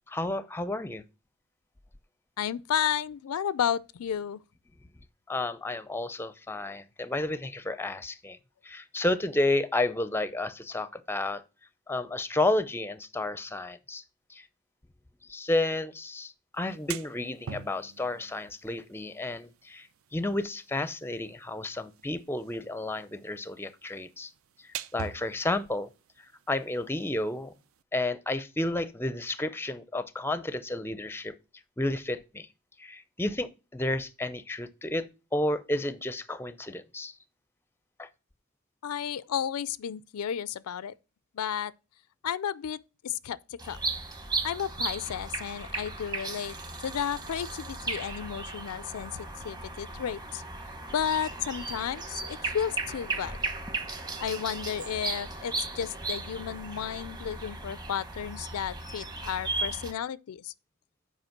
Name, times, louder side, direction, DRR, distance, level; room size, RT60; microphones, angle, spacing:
voice 1, 0.1-1.0 5.3-8.4 8.6-11.4 11.9-14.0 14.3-14.5 15.3-19.9 20.1-24.3 24.6-25.9 26.5-27.5 27.9-31.3 31.8-32.5 32.8-35.1 35.3-37.1 38.0-38.1, left 2 dB, 10° left, 0.5 m, -31 dB
voice 2, 2.4-4.4 38.8-40.9 41.3-41.7 42.2-43.4 43.6-43.8 44.4-50.4 50.9-53.4 54.2-60.5, left 8 dB, 80° left, 0.4 m, -33 dB
sound 1, 16.5-27.8, right 7 dB, 65° right, 0.5 m, -47 dB
sound 2, 43.6-59.9, right 3 dB, 20° right, 1.0 m, -36 dB
7.9 x 4.9 x 5.8 m
head